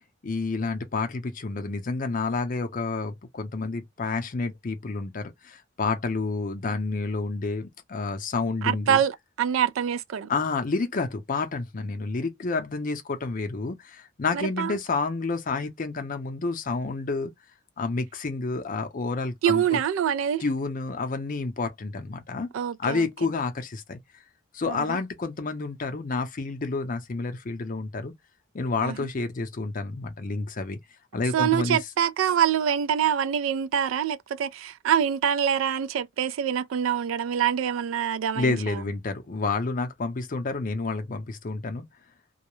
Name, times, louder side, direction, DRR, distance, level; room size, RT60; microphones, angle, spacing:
voice 1, 0.2-9.0 10.3-17.3 17.8-19.8 20.4-22.5 22.8-24.0 24.5-28.1 28.5-30.8 31.1-31.8 38.3-41.8, left 3 dB, 40° left, 0.5 m, -29 dB
voice 2, 8.6-10.3 14.3-14.8 19.4-20.4 22.5-23.1 24.6-25.0 28.8-29.1 31.3-38.8, right 9 dB, 75° right, 0.3 m, -25 dB
2.3 x 2.0 x 2.9 m
head